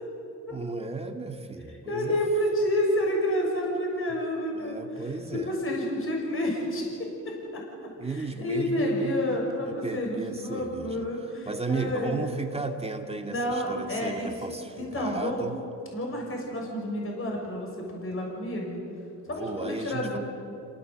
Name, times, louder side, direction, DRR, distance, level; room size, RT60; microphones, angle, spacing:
voice 1, 0.5-2.2 4.5-5.6 8.0-9.2 9.6-11.0 11.5-15.5 19.4-20.2, right 3 dB, 15° right, 4 dB, 2.4 m, -34 dB
voice 2, 1.7-4.8 5.3-7.6 8.0-12.3 13.3-14.3 14.8-15.4 15.9-18.8 19.3-20.2, left 1 dB, 35° left, 0 dB, 6.6 m, -29 dB
28.5 x 18.5 x 8.1 m, 2.7 s
cardioid pair, 85°, 36 cm